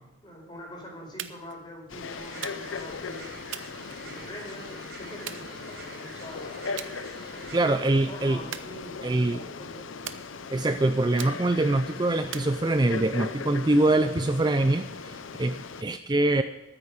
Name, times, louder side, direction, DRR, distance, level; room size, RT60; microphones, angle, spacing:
voice 1, 0.2-3.3 4.0-6.8 7.1-9.8, equal, 25° left, -1 dB, 4.6 m, -44 dB
sound 1, 1.2-1.6 2.4-2.9 3.5-4.5 5.3-6.1 6.8-7.0 7.4-7.7 8.5-9.3 10.1-10.7 11.2-11.7 12.3-13.1, right 10 dB, 80° right, 0.8 m, -41 dB
Frog, 1.9-15.8, left 5 dB, 90° left, 0.8 m, -39 dB
sound 2, 2.1-7.6, right 5 dB, 50° right, 1.2 m, -47 dB
voice 2, 7.5-8.4 9.0-9.4 10.5-16.4, right 2 dB, 20° right, 9 dB, 0.4 m, -24 dB
13.5 x 9.9 x 6.5 m, 1.1 s
head